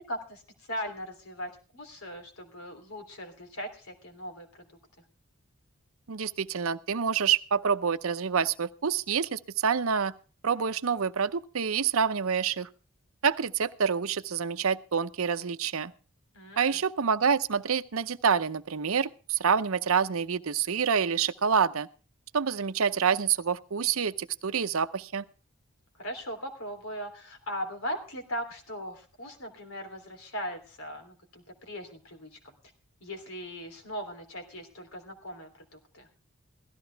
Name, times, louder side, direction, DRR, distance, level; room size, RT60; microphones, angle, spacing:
voice 1, 0.1-4.7 16.3-16.8 25.9-32.5 33.0-36.1, equal, 85° left, 3.2 m, -39 dB
voice 2, 6.1-10.1 10.4-12.7 13.2-15.9 16.6-21.9 22.3-25.2, right 6 dB, 80° right, 0.7 m, -27 dB
16.5 x 14.0 x 3.4 m
head